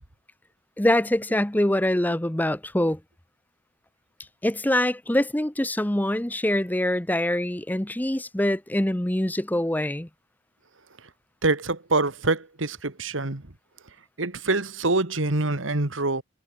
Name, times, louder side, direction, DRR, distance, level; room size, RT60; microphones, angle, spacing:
voice 1, 0.8-3.0 4.4-10.1, left 1 dB, 10° left, 0.9 m, -24 dB
voice 2, 11.4-13.4 14.2-16.2, right 2 dB, 85° right, 2.1 m, -25 dB
head